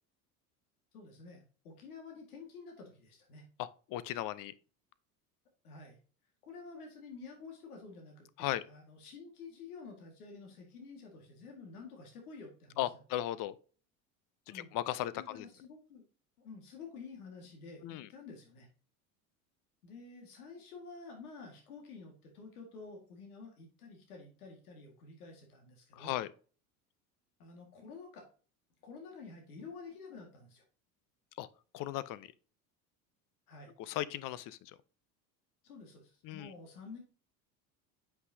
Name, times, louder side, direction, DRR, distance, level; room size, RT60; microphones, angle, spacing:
voice 1, 0.9-3.5 5.6-6.0 6.4-12.9 14.5-14.7 15.1-16.0 16.4-18.7 19.8-26.2 27.4-28.3 28.8-30.6 33.5-33.7 35.6-37.0, left 4 dB, 85° left, 2.0 m, -50 dB
voice 2, 3.6-4.5 8.4-8.6 12.8-13.5 14.5-15.4 17.8-18.1 25.9-26.3 31.4-31.5 31.7-32.3 33.8-34.8 36.2-36.5, left 13 dB, 45° left, 0.7 m, -37 dB
8.2 x 5.6 x 2.7 m
hypercardioid pair, 80°, 43 cm